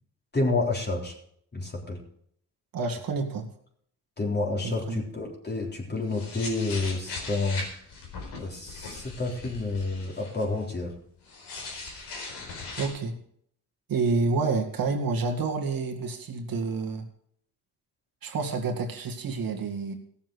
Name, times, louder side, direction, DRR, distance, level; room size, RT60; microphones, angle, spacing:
voice 1, 0.3-1.1 1.5-2.0 4.2-7.6 8.4-10.9, left 3 dB, 25° left, -2 dB, 3.9 m, -29 dB
voice 2, 2.7-3.5 4.6-5.0 12.8-13.2 13.9-17.1 18.2-19.9, right 4 dB, 60° right, 3 dB, 2.2 m, -28 dB
sound 1, 5.6-10.6 11.2-12.9, left 3 dB, 90° left, 4.4 m, -39 dB
16.5 x 7.2 x 6.4 m, 0.67 s
cardioid pair, 105°, 39 cm